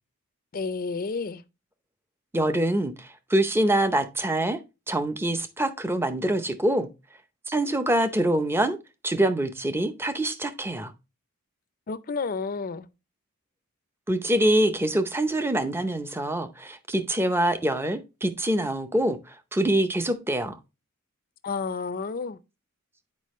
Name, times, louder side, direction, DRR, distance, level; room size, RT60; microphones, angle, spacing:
voice 1, 0.5-1.4 11.9-12.9 21.4-22.4, left 4 dB, 40° left, 0.5 m, -30 dB
voice 2, 2.3-4.6 4.9-6.9 7.5-8.8 9.0-10.9 14.1-20.6, right 1 dB, 10° right, 0.6 m, -25 dB
8.3 x 4.9 x 3.1 m
head